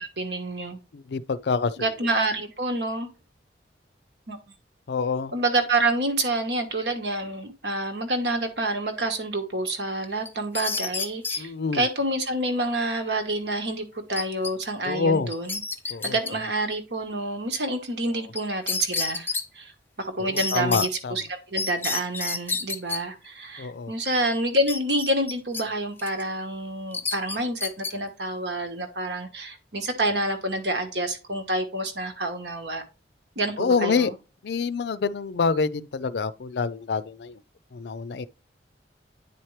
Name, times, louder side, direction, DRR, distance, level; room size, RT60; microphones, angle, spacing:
voice 1, 0.0-0.8 1.8-3.1 4.3-4.6 5.3-15.6 15.9-19.7 20.0-32.8 33.4-34.1, right 1 dB, 70° right, 1.3 m, -28 dB
voice 2, 0.9-1.8 4.9-5.3 11.4-11.9 14.8-15.3 15.9-16.2 20.2-21.2 23.6-23.9 33.6-34.1 34.4-37.4 37.7-38.3, left 4 dB, 65° left, 0.4 m, -26 dB
sound 1, 10.3-11.4 14.2-14.5 14.8-14.9 15.3-16.3 18.4-18.5 18.7-19.4 20.4-20.9 21.6-23.0 24.7-25.6 26.0-26.2 26.9-27.9, left 4 dB, 10° left, 0.5 m, -29 dB
9.3 x 4.4 x 3.2 m
head